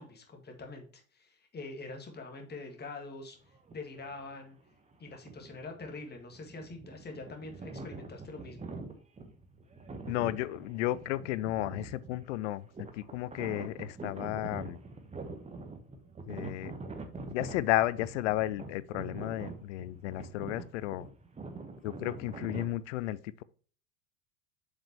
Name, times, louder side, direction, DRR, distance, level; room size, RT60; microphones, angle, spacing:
voice 1, 0.0-3.4 3.7-4.6 5.0-8.7, left 3 dB, 20° left, 1.8 m, -44 dB
sound 1, 3.5-4.3 4.9-22.8, right 3 dB, 15° right, 1.2 m, -45 dB
voice 2, 10.1-12.6 12.9-14.8 16.3-16.7 17.2-21.1 21.8-23.4, left 15 dB, 55° left, 0.6 m, -33 dB
7.2 x 5.2 x 3.0 m
figure-of-eight pair, 70°, 43 cm